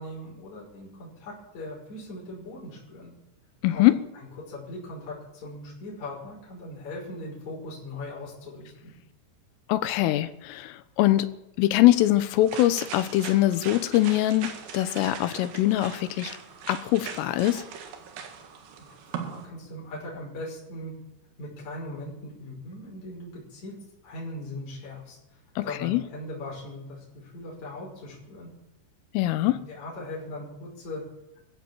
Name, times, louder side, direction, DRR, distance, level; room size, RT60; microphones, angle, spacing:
voice 1, 0.0-3.1 3.7-3.8 4.4-8.9 18.8-21.0 21.4-23.8 24.0-25.2 25.6-28.5 29.4-31.0, left 1 dB, 35° left, 6.9 m, -39 dB
voice 2, 3.6-4.0 9.7-11.3 11.6-16.4 16.7-17.7 25.6-26.0 29.2-29.6, left 15 dB, 80° left, 3.5 m, -23 dB
sound 1, 11.9-19.5, right 7 dB, 60° right, 3.4 m, -40 dB
23.0 x 15.5 x 7.5 m
omnidirectional pair, 6.0 m